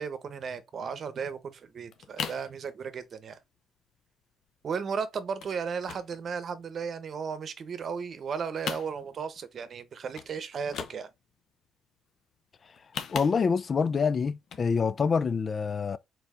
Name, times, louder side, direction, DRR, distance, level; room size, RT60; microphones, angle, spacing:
voice 1, 0.0-3.4 4.6-11.1, right 6 dB, 55° right, 0.8 m, -35 dB
sound 1, 1.3-1.4 1.7-2.5 2.9-3.2 3.6-3.7 3.9-4.1 4.4-4.9 5.4-5.6 5.8-7.1 7.5-8.3 8.5-9.4 9.7-9.8 10.1-10.3 10.6-11.4 12.6-13.7 14.4-14.7 15.1-15.2, left 7 dB, 70° left, 0.7 m, -39 dB
voice 2, 13.1-16.0, left 5 dB, 40° left, 0.4 m, -26 dB
4.6 x 3.8 x 2.5 m
cardioid pair, 90°, 0 cm